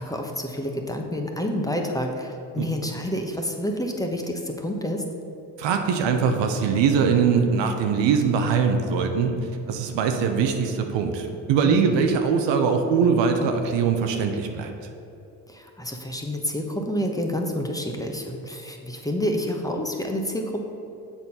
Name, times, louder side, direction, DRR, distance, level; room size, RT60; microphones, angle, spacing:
voice 1, 0.0-5.0 11.6-12.0 15.5-20.6, equal, 10° left, 2 dB, 1.1 m, -28 dB
voice 2, 5.6-9.4 9.7-14.7, right 6 dB, 75° right, 5 dB, 0.8 m, -22 dB
7.0 x 4.3 x 5.5 m, 2.9 s
hypercardioid pair, 50°, 44 cm